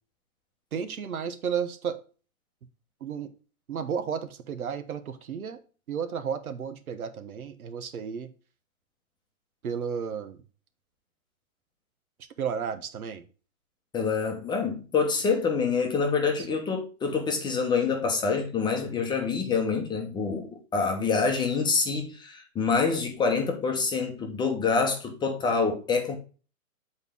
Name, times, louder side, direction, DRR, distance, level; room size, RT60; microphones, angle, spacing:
voice 1, 0.7-2.0 3.0-3.3 3.7-5.6 5.9-8.3 9.6-10.4 12.4-13.2, right 7 dB, 85° right, 1.3 m, -33 dB
voice 2, 13.9-26.2, left 5 dB, 10° left, 0.9 m, -26 dB
8.0 x 4.5 x 3.5 m
hypercardioid pair, 145°, 42 cm